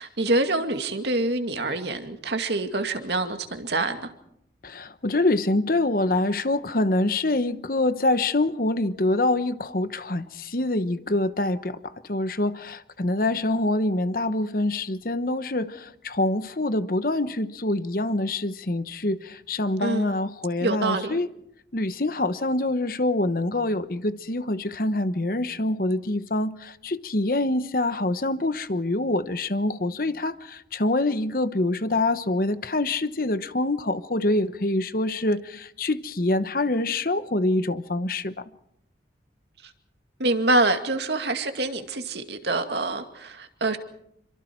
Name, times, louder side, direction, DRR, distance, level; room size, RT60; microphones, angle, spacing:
voice 1, 0.0-4.1 19.8-20.1 20.6-21.2 40.2-43.8, right 2 dB, 70° right, 2.3 m, -26 dB
voice 2, 4.6-11.8 12.1-21.3 21.7-38.3, left 2 dB, 50° left, 1.1 m, -25 dB
27.5 x 24.0 x 4.6 m
head